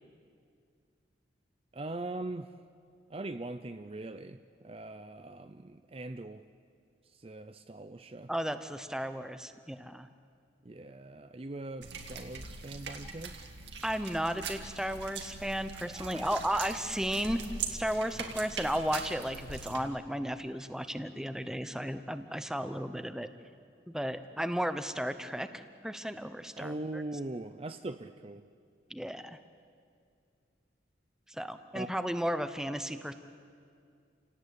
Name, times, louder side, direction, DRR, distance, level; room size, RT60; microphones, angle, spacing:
voice 1, 1.7-2.5 3.1-6.4 7.2-8.3 10.6-13.4 15.9-16.3 18.2-18.3 26.6-28.4 31.7-31.9, right 2 dB, 30° right, 9 dB, 0.5 m, -41 dB
voice 2, 8.3-10.1 13.8-17.4 17.7-23.3 23.9-27.0 28.9-29.4 31.3-33.1, equal, 5° right, 10 dB, 0.8 m, -34 dB
sound 1, 11.8-19.8, right 5 dB, 75° right, 2.2 m, -41 dB
29.0 x 18.0 x 8.3 m, 2.3 s
head